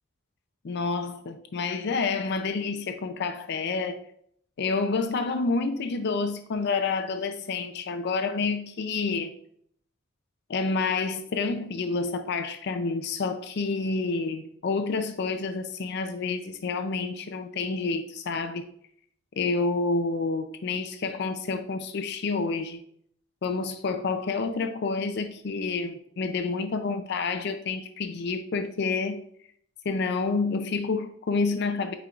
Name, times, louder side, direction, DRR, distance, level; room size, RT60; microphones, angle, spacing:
voice 1, 0.6-4.0 4.6-9.3 10.5-18.7 19.4-22.8 23.4-29.2 29.9-31.9, left 4 dB, 55° left, 0.4 m, -29 dB
8.9 x 4.4 x 2.4 m
head